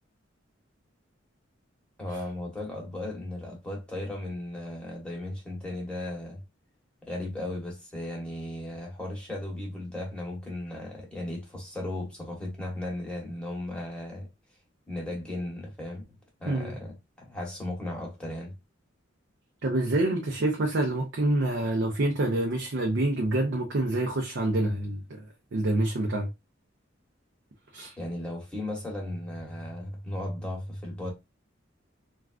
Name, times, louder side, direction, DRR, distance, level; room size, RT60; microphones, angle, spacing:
voice 1, 2.0-6.4 7.0-14.3 14.9-16.0 16.4-18.5 28.0-31.1, left 1 dB, 5° left, 1.1 m, -36 dB
voice 2, 19.6-25.3 25.5-26.3 27.7-28.0, right 1 dB, 60° right, 0.6 m, -27 dB
3.5 x 2.3 x 2.3 m
head